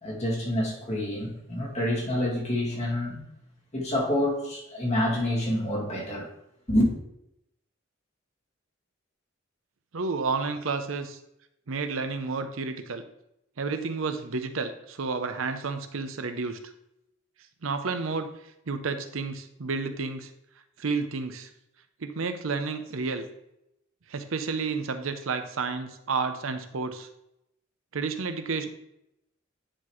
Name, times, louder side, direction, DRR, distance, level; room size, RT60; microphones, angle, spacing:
voice 1, 0.0-3.2 3.7-6.3 6.7-6.9, left 1 dB, 35° left, 1.9 m, -27 dB
voice 2, 9.9-11.2 11.7-13.0 13.6-16.6 17.6-18.3 18.7-20.3 20.8-21.5 22.0-23.3 24.1-27.1 27.9-28.7, right 4 dB, 85° right, 0.7 m, -31 dB
9.8 x 4.0 x 3.1 m
head